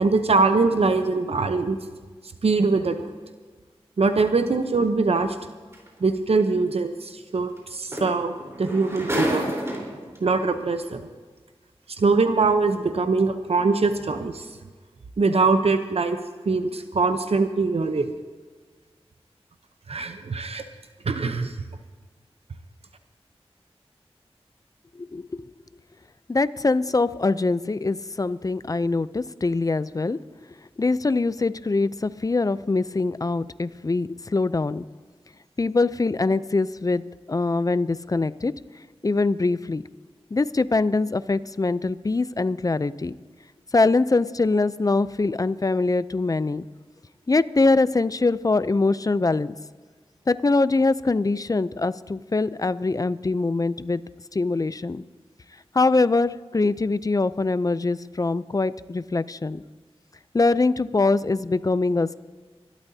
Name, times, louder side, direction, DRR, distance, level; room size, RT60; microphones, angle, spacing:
voice 1, 0.0-1.8 2.4-3.0 4.0-5.4 6.0-9.5 10.2-11.0 12.0-14.5 15.2-16.2 16.5-18.1 19.9-20.6 21.1-21.5, right 4 dB, 70° right, 8 dB, 0.8 m, -22 dB
sound 1, 5.7-5.9 7.6-7.7 7.9-10.2 11.1-11.2, equal, 25° right, 4.1 m, -29 dB
voice 2, 25.0-25.5 26.3-30.2 30.8-34.8 35.6-38.5 39.0-39.8 40.3-43.1 43.7-46.7 47.3-49.5 50.3-54.0 54.3-55.0 55.7-59.6 60.3-62.1, left 3 dB, 35° left, 15 dB, 0.5 m, -23 dB
25.5 x 12.5 x 2.8 m, 1.5 s
wide cardioid pair, 65°, 11 cm